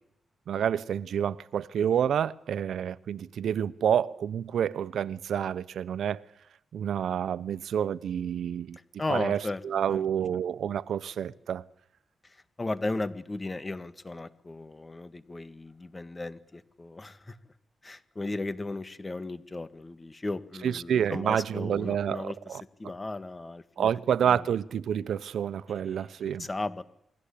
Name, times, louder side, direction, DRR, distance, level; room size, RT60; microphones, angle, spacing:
voice 1, 0.5-6.2 6.7-8.8 9.1-11.7 20.6-22.6 23.8-26.5, right 9 dB, 85° right, 1.0 m, -28 dB
voice 2, 9.0-9.6 9.9-10.0 12.2-17.5 17.8-23.9 24.2-24.5 26.2-26.8, left 2 dB, 25° left, 1.9 m, -36 dB
29.0 x 21.5 x 8.7 m
wide cardioid pair, 110°, 0 cm